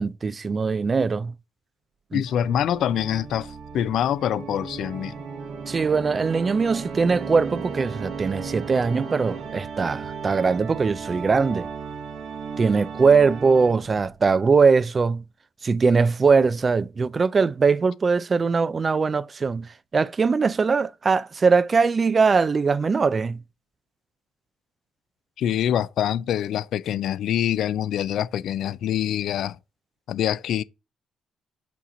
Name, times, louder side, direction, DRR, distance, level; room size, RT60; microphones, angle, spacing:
voice 1, 0.0-1.3 2.1-2.2 5.7-11.7 12.6-15.2 15.6-23.4, right 5 dB, 35° right, 0.4 m, -21 dB
voice 2, 2.1-5.2 25.4-29.6 30.1-30.6, left 10 dB, 75° left, 0.3 m, -25 dB
Organ, 2.3-14.1, right 5 dB, 60° right, 1.2 m, -35 dB
7.2 x 2.9 x 5.0 m
cardioid pair, 90°, 0 cm